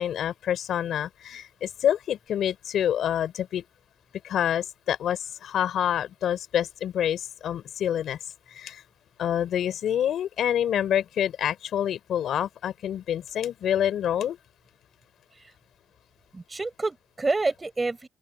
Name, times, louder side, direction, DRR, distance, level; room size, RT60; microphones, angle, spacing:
voice 1, 0.0-3.6 4.2-8.2 8.5-8.8 9.2-14.4, left 10 dB, 70° left, 3.6 m, -27 dB
voice 2, 16.3-18.1, right 3 dB, 25° right, 5.1 m, -28 dB
open air
cardioid pair, 90°, 0 cm